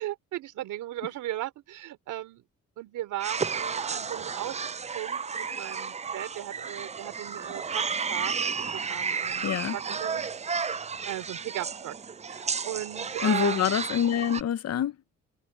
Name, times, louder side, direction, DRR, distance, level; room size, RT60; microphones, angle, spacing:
voice 1, 0.0-2.4 2.8-9.5 9.7-10.2 10.6-10.8 11.0-12.0 12.3-13.7, right 14 dB, 85° right, 3.8 m, -37 dB
sound 1, 3.2-14.4, right 5 dB, 25° right, 0.5 m, -32 dB
voice 2, 9.4-9.8 13.2-14.9, left 9 dB, 55° left, 0.9 m, -26 dB
cardioid pair, 90°, 30 cm